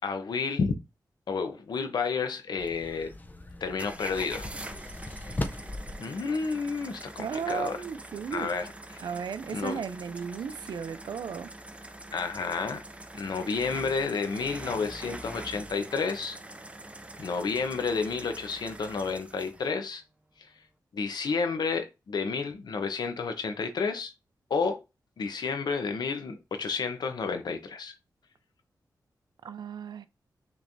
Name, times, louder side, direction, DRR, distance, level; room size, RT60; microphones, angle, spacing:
voice 1, 0.0-0.8 1.3-3.1 3.6-4.5 5.1-5.4 6.0-7.8 8.3-8.7 9.5-9.8 12.1-12.8 13.1-16.4 17.2-20.0 20.4-20.5 20.9-24.1 24.5-24.8 25.2-27.9, left 5 dB, 85° left, 0.9 m, -31 dB
sound 1, 2.6-6.0, left 2 dB, 25° left, 0.6 m, -38 dB
sound 2, 3.8-19.7, right 1 dB, 15° right, 0.5 m, -44 dB
voice 2, 7.2-8.5 9.0-11.5 29.4-30.1, right 6 dB, 85° right, 0.4 m, -35 dB
6.0 x 3.2 x 2.7 m
wide cardioid pair, 90°, 7 cm